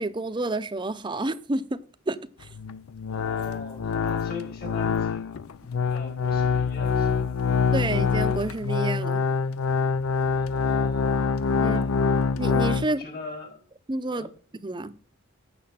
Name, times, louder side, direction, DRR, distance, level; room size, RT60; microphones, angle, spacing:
voice 1, 0.0-1.8 2.1-2.5 7.7-9.2 11.6-11.8 12.4-13.0 13.9-14.3 14.6-14.9, right 2 dB, 20° right, 0.6 m, -29 dB
sound 1, 2.4-12.9, left 5 dB, 85° left, 0.5 m, -25 dB
voice 2, 3.1-7.3 10.3-11.3 11.6-12.0 12.9-13.7 14.1-14.3, left 3 dB, 50° left, 2.8 m, -41 dB
8.5 x 6.8 x 5.7 m
head